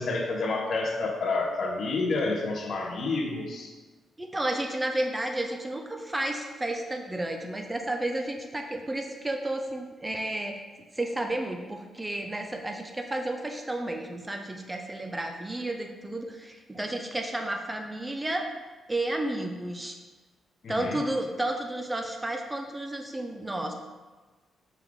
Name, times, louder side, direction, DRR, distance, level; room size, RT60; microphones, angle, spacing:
voice 1, 0.0-3.7 20.6-21.0, left 3 dB, 55° left, 1 dB, 0.6 m, -29 dB
voice 2, 4.2-10.6 10.9-18.5 18.9-20.0 20.7-23.7, right 1 dB, 15° right, 4 dB, 0.4 m, -32 dB
4.7 x 2.4 x 3.5 m, 1.3 s
cardioid pair, 90°, 0 cm